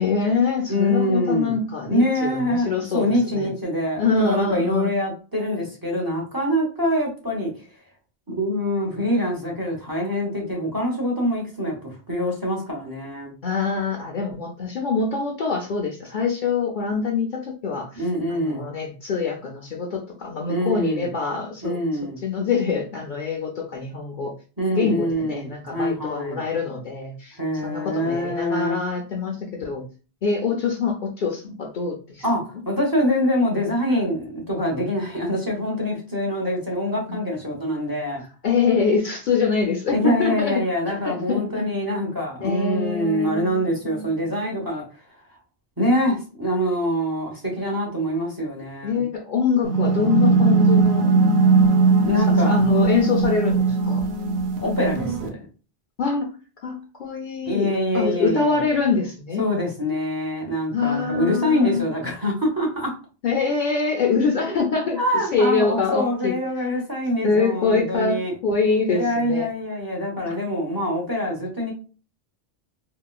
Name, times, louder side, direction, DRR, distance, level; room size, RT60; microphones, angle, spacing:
voice 1, 0.0-3.5 4.0-4.9 13.4-21.8 22.2-24.3 24.7-29.8 30.2-32.2 37.1-37.2 38.4-41.7 42.4-43.5 43.8-44.3 48.8-51.1 52.3-54.1 56.0-56.3 56.6-59.4 60.7-61.9 63.2-65.0 65.3-66.4 66.6-66.7 67.2-69.5 70.3-70.4, left 5 dB, 60° left, 1 dB, 0.6 m, -24 dB
voice 2, 0.7-1.5 1.9-2.7 2.9-7.5 8.3-13.3 17.9-18.6 20.5-21.1 21.6-22.2 24.6-26.4 27.4-28.8 32.2-38.2 39.9-44.8 45.8-49.1 52.0-52.7 54.6-55.5 57.5-58.5 59.4-62.9 65.0-68.3 68.9-71.7, equal, 20° right, -2 dB, 0.8 m, -24 dB
sound 1, 49.6-55.3, right 4 dB, 85° right, 0.9 m, -19 dB
3.8 x 2.2 x 2.3 m, 0.36 s
omnidirectional pair, 1.1 m